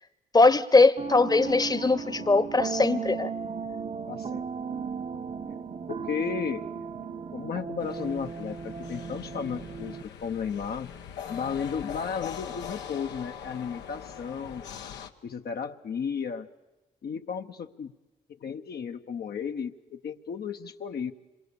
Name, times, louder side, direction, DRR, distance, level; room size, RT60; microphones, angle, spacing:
voice 1, 0.3-3.3, left 3 dB, 20° left, 16 dB, 1.0 m, -21 dB
sound 1, 1.0-10.0, right 5 dB, 40° right, 1.0 m, -36 dB
voice 2, 4.1-4.5 5.9-6.7 7.3-10.9 11.3-14.7 15.2-16.5 17.0-17.9 18.4-21.1, left 6 dB, 60° left, 5 dB, 0.9 m, -34 dB
sound 2, 7.8-15.1, left 8 dB, 85° left, 0.9 m, -41 dB
26.0 x 23.0 x 6.9 m, 1.1 s
supercardioid pair, 50°, 18 cm